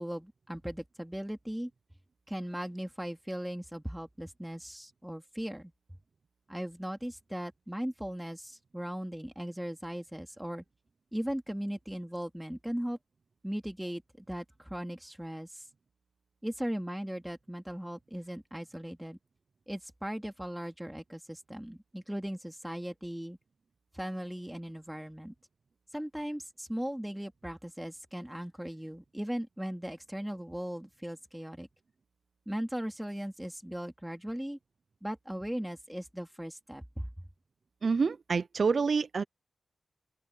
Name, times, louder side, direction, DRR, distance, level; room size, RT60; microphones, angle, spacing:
voice 1, 0.0-1.7 2.3-5.7 6.5-10.6 11.1-13.0 13.4-15.6 16.4-19.2 19.7-23.4 23.9-25.3 25.9-31.7 32.5-34.6 35.0-37.1, equal, 5° right, 2.7 m, -38 dB
voice 2, 37.8-39.2, right 5 dB, 60° right, 0.5 m, -27 dB
open air
wide cardioid pair, 95°, 0 cm